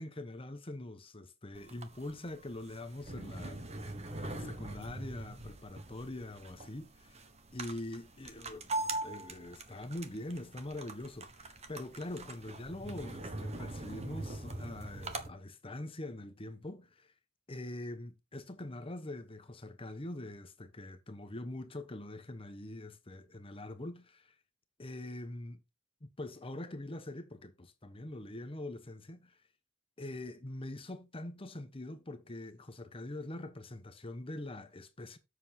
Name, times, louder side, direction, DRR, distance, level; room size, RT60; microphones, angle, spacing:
voice 1, 0.0-7.2 7.5-17.1 17.5-24.3 24.8-25.6 26.0-29.4 30.0-35.2, left 1 dB, 30° left, 1.1 m, -44 dB
sound 1, 1.5-15.3, right 2 dB, 35° right, 1.3 m, -42 dB
7.8 x 6.4 x 4.4 m
head